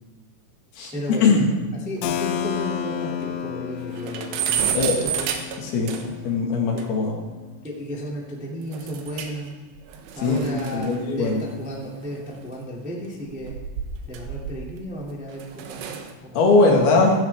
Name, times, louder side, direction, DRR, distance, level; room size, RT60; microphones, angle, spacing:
voice 1, 0.9-1.5 1.8-5.3 6.7-6.9 7.6-9.5 10.1-13.6 14.1-16.4, equal, 5° right, -3 dB, 0.7 m, -34 dB
Keyboard (musical), 2.0-7.6, left 9 dB, 75° left, 2.7 m, -32 dB
sound 1, 2.0-2.1 2.4-2.5 2.8-2.9 3.3-3.4 3.7-6.3 6.8-6.9 8.7-9.5 9.8-12.4 13.2-14.9 15.3-16.1, right 8 dB, 80° right, 3.5 m, -31 dB
voice 2, 5.6-5.9 6.2-7.2 10.2-10.4 10.7-11.4 16.3-17.1, left 3 dB, 60° left, 0 dB, 3.4 m, -19 dB
16.0 x 15.5 x 3.6 m, 1.2 s
omnidirectional pair, 5.5 m